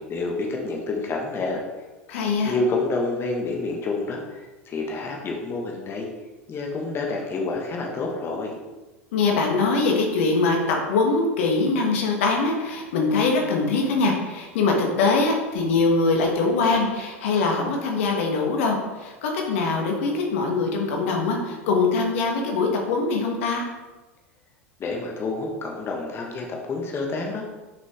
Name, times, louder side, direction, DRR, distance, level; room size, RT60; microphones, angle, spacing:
voice 1, 0.0-1.6 2.4-6.1 6.5-8.6 24.8-27.4, left 3 dB, 35° left, 0 dB, 1.3 m, -28 dB
voice 2, 2.1-2.5 9.1-23.6, left 3 dB, 65° left, 1 dB, 1.4 m, -23 dB
6.7 x 5.2 x 3.6 m, 1.2 s
hypercardioid pair, 85°, 7 cm